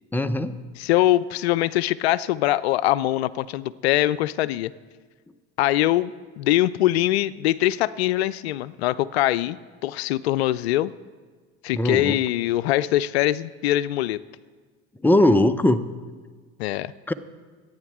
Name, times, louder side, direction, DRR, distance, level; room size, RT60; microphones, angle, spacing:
voice 1, 0.1-0.6 11.7-12.2 15.0-15.8 17.1-17.2, left 1 dB, 5° left, 10 dB, 0.8 m, -19 dB
voice 2, 0.8-4.7 5.6-9.6 9.8-10.9 11.6-14.2 16.6-16.9, left 14 dB, 80° left, 17 dB, 0.5 m, -23 dB
25.0 x 9.3 x 3.6 m, 1.5 s
hypercardioid pair, 75°, 31 cm